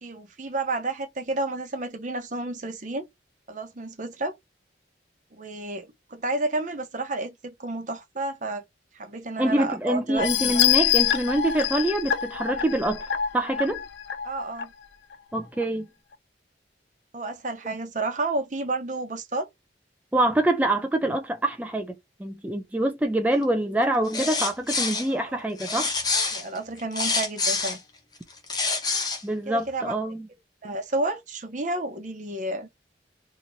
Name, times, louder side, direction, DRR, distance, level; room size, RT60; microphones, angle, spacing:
voice 1, 0.0-3.0 3.5-4.3 5.3-8.6 8.9-10.5 14.2-14.7 17.1-19.5 25.1-25.5 26.3-27.8 29.5-29.9 30.6-32.7, right 2 dB, 45° right, 0.8 m, -31 dB
voice 2, 9.4-13.1 13.3-13.8 15.3-15.9 20.1-21.9 22.2-25.9 29.2-30.3, right 1 dB, 10° right, 0.4 m, -25 dB
sound 1, 10.2-14.6 15.1-15.2 15.6-15.7, left 10 dB, 80° left, 0.5 m, -25 dB
sound 2, 24.0-25.1 25.6-27.8 28.3-29.2, left 4 dB, 25° left, 0.8 m, -26 dB
2.9 x 2.6 x 4.3 m
head